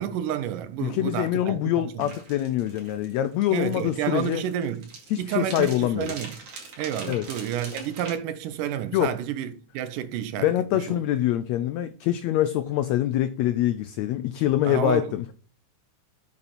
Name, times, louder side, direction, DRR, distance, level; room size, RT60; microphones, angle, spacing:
voice 1, 0.0-2.1 3.5-4.9 5.2-6.4 6.8-11.0 14.6-15.1, right 10 dB, 85° right, 2.4 m, -30 dB
voice 2, 0.8-4.4 5.1-6.1 7.1-7.3 8.9-9.1 10.4-15.3, left 13 dB, 85° left, 1.5 m, -25 dB
sound 1, 2.0-8.1, right 4 dB, 65° right, 3.6 m, -42 dB
8.6 x 6.7 x 4.3 m
omnidirectional pair, 3.7 m